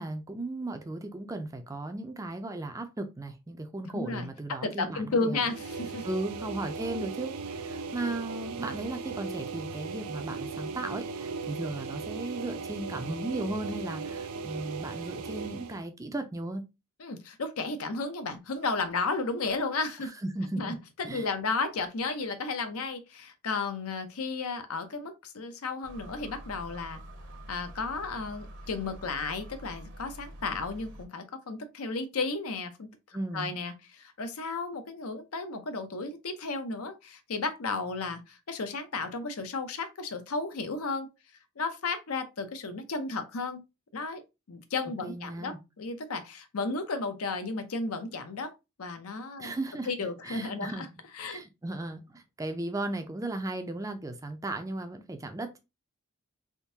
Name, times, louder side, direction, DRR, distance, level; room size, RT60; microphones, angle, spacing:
voice 1, 0.0-5.4 6.0-16.6 20.2-20.8 21.0-21.3 33.1-33.5 45.0-45.6 49.4-49.9 50.2-50.9 51.3-55.6, right 2 dB, 15° right, 0.4 m, -36 dB
voice 2, 3.8-4.3 4.6-6.0 17.0-20.1 20.6-27.0 27.5-32.9 33.3-41.1 41.6-43.6 43.9-44.2 44.5-48.5 48.8-49.5 49.9-50.9 51.1-51.4, left 3 dB, 75° left, 0.6 m, -33 dB
sound 1, 5.4-15.8, right 4 dB, 80° right, 0.5 m, -37 dB
sound 2, 25.8-31.1, right 1 dB, 55° right, 0.8 m, -46 dB
3.6 x 2.6 x 2.7 m
head